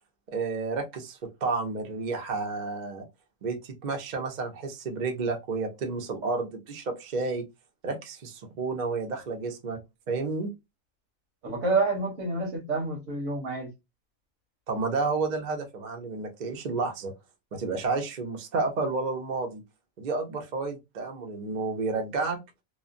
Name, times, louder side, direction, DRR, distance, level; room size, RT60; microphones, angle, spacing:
voice 1, 0.3-3.1 3.4-7.4 7.8-9.8 10.1-10.5 14.7-17.1 17.5-19.6 20.0-22.4, right 3 dB, 45° right, 0.6 m, -31 dB
voice 2, 11.4-13.7, right 3 dB, 65° right, 1.3 m, -28 dB
3.0 x 2.1 x 2.5 m
omnidirectional pair, 1.4 m